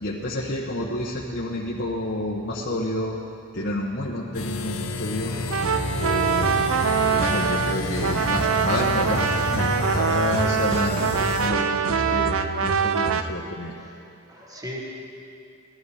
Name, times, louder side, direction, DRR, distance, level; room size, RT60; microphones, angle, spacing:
voice 1, 0.0-3.2 3.5-5.3 6.0-13.8, left 1 dB, 55° left, -4 dB, 1.1 m, -29 dB
sound 1, 4.3-11.5, left 3 dB, 85° left, 0.8 m, -30 dB
sound 2, 5.3-13.2, right 6 dB, 75° right, 0.6 m, -24 dB
voice 2, 12.1-12.8 13.1-13.3 13.8-13.9 14.3-14.8, left 1 dB, 15° right, -2 dB, 1.5 m, -41 dB
17.5 x 12.0 x 4.9 m, 2.6 s
head